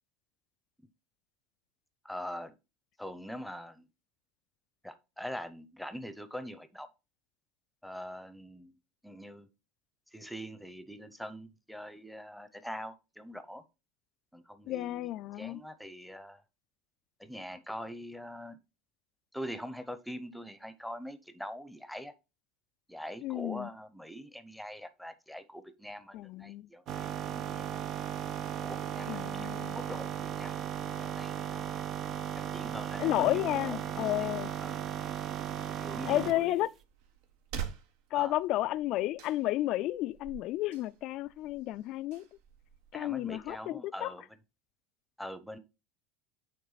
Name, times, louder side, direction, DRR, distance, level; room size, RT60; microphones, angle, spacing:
voice 1, 2.0-2.5 3.0-3.8 4.8-6.9 7.8-8.8 9.0-9.5 10.1-13.6 14.3-16.4 17.2-18.6 19.3-22.1 22.9-27.8 28.6-31.9 32.4-34.3 34.6-35.1 35.8-36.6 38.1-38.4 42.9-44.2 45.2-45.6, equal, ahead, 0.7 m, -43 dB
voice 2, 14.7-15.6 23.2-23.7 26.1-26.7 29.1-29.8 33.0-34.5 36.1-36.7 38.1-42.2 42.9-44.1, left 15 dB, 55° left, 0.3 m, -32 dB
sound 1, 26.9-36.4, right 9 dB, 45° right, 0.6 m, -36 dB
sound 2, 36.1-43.5, right 8 dB, 75° right, 1.2 m, -47 dB
8.5 x 3.6 x 4.1 m
supercardioid pair, 115°, 0 cm